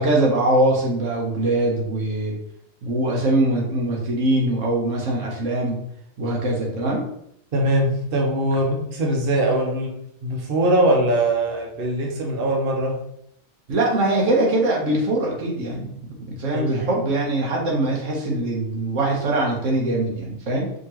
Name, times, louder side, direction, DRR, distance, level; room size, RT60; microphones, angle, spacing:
voice 1, 0.0-2.4 2.8-5.8 6.2-7.0 13.7-15.9 16.3-20.7, right 2 dB, 90° right, -2 dB, 1.4 m, -22 dB
voice 2, 7.5-9.9 10.2-13.0 16.5-16.7, right 1 dB, 50° right, -1 dB, 1.0 m, -21 dB
5.0 x 2.9 x 3.0 m, 0.72 s
omnidirectional pair, 1.3 m